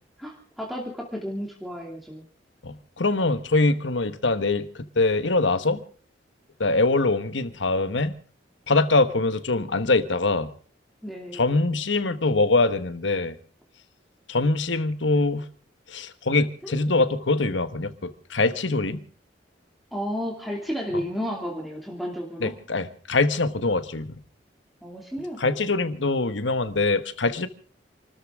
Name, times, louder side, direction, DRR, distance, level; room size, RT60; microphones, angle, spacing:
voice 1, 0.2-2.2 11.0-11.4 16.6-16.8 19.9-22.5 24.8-25.7, equal, ahead, 2.6 m, -32 dB
voice 2, 2.6-5.8 6.6-8.1 8.7-10.5 11.3-13.3 14.3-15.5 15.9-19.0 22.4-24.2 25.4-27.5, left 3 dB, 80° left, 1.3 m, -23 dB
28.5 x 13.5 x 3.7 m
head